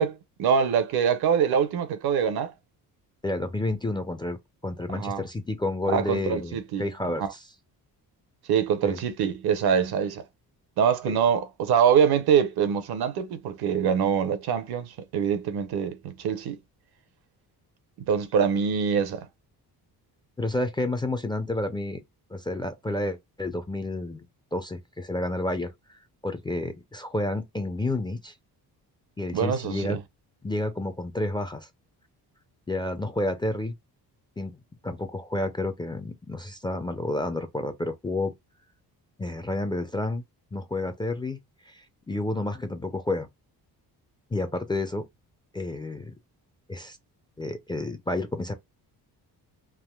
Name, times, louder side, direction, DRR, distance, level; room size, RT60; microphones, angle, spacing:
voice 1, 0.0-2.5 4.9-5.2 5.9-6.9 7.2-7.3 8.5-10.2 10.8-16.6 18.1-19.3 29.3-30.0, right 7 dB, 70° right, 0.7 m, -24 dB
voice 2, 3.2-4.4 4.6-7.5 8.8-9.0 11.1-11.2 20.4-22.0 22.3-24.3 24.5-28.3 29.2-30.0 30.4-31.7 32.7-33.7 34.4-34.6 34.8-38.3 39.2-40.2 40.5-41.4 41.7-43.3 44.3-45.0 45.5-46.1 46.7-47.0 47.4-48.5, left 2 dB, 15° left, 0.3 m, -30 dB
3.5 x 2.5 x 2.2 m
cardioid pair, 120°, 39 cm